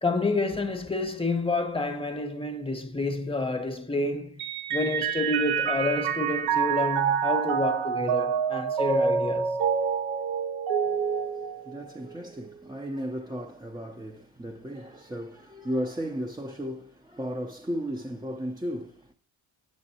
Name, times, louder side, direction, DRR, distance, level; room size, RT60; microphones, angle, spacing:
voice 1, 0.0-4.4 4.7-9.6, left 2 dB, 10° left, 0.9 m, -29 dB
Mallet percussion, 4.4-12.1, right 7 dB, 80° right, 0.6 m, -27 dB
voice 2, 10.9-19.1, equal, 10° right, 0.4 m, -35 dB
7.7 x 6.4 x 2.8 m
cardioid pair, 65°, 49 cm